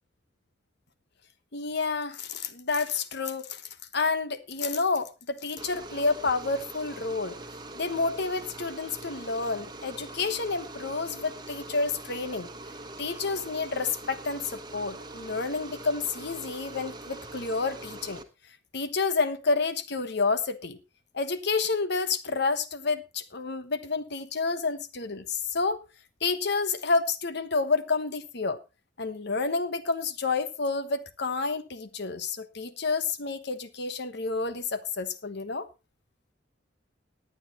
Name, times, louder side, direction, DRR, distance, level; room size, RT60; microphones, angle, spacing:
voice 1, 1.5-3.6 3.9-7.4 7.7-12.5 13.0-18.2 18.7-20.8 21.1-25.8 26.2-28.6 29.0-35.7, left 4 dB, 65° left, 1.2 m, -29 dB
sound 1, 5.6-18.2, right 2 dB, 25° right, 1.3 m, -43 dB
20.0 x 9.0 x 3.1 m
head